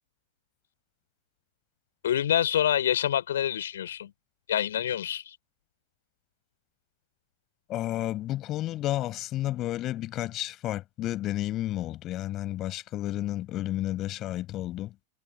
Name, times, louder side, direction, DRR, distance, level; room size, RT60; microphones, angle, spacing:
voice 1, 2.0-4.1 4.5-5.3, left 10 dB, 60° left, 6.1 m, -26 dB
voice 2, 7.7-14.9, left 14 dB, 35° left, 6.9 m, -31 dB
figure-of-eight pair, 90°, 0 cm